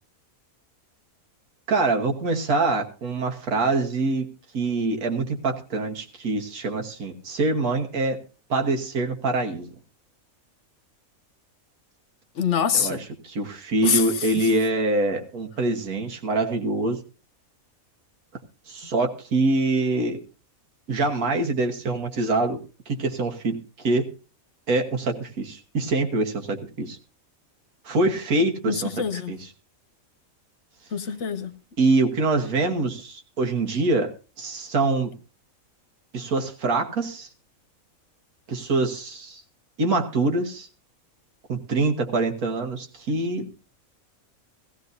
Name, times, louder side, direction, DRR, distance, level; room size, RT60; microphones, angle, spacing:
voice 1, 1.7-4.3 4.5-8.2 8.5-9.7 12.7-13.0 13.2-17.0 18.7-20.2 20.9-22.6 22.9-24.1 24.7-27.0 27.8-28.9 29.3-29.4 31.8-34.1 34.4-35.1 36.1-37.3 38.5-39.4 39.8-40.7 41.5-43.5, right 2 dB, 90° right, 1.8 m, -24 dB
voice 2, 12.3-13.0 13.8-14.5 28.7-29.3 30.9-31.5, left 7 dB, 60° left, 1.1 m, -25 dB
17.5 x 15.0 x 2.7 m
omnidirectional pair, 1.5 m